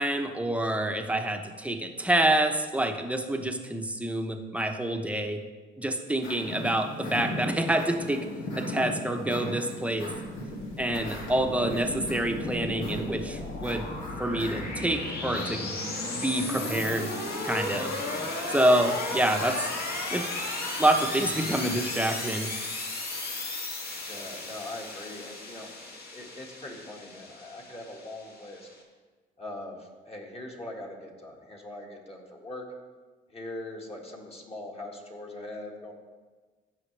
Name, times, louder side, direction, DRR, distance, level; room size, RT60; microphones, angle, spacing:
voice 1, 0.0-5.4 5.8-8.2 8.6-10.1 10.8-13.9 14.2-15.7 16.2-17.1 17.4-17.9 18.5-19.7 20.1-20.3 20.8-22.5, right 1 dB, 5° right, 5 dB, 0.9 m, -27 dB
sound 1, 6.2-22.1, left 1 dB, 85° left, 2.0 m, -39 dB
sound 2, 10.3-28.8, left 2 dB, 50° left, 1.9 m, -35 dB
voice 2, 24.0-28.7 29.4-32.6 33.3-35.9, left 1 dB, 30° left, -1 dB, 1.9 m, -41 dB
15.0 x 5.8 x 3.3 m, 1.4 s
cardioid pair, 90°, 20 cm